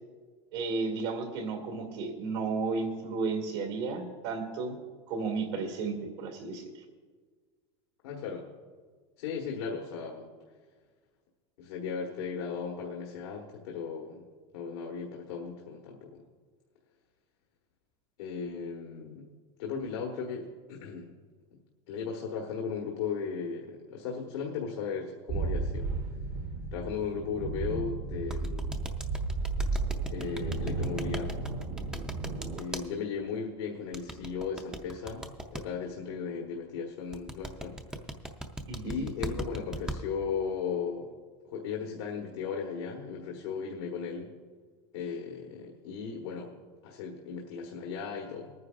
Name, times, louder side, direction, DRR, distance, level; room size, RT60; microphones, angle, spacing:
voice 1, 0.5-4.8 5.1-6.8 38.7-39.1, right 4 dB, 70° right, 4 dB, 2.3 m, -33 dB
voice 2, 8.0-8.5 9.2-10.3 11.6-14.2 14.5-16.2 18.2-19.3 19.6-21.1 21.9-25.9 26.7-28.8 30.0-31.4 32.5-37.8 38.8-41.1 41.4-44.3 44.9-46.5 46.8-48.5, left 6 dB, 90° left, 0 dB, 1.5 m, -36 dB
sound 1, 25.3-32.6, right 3 dB, 45° right, 1.1 m, -33 dB
sound 2, 28.3-32.8 33.9-35.6 37.1-40.0, right 1 dB, 5° right, 0.5 m, -38 dB
23.5 x 9.5 x 2.5 m, 1.5 s
supercardioid pair, 155°, 14 cm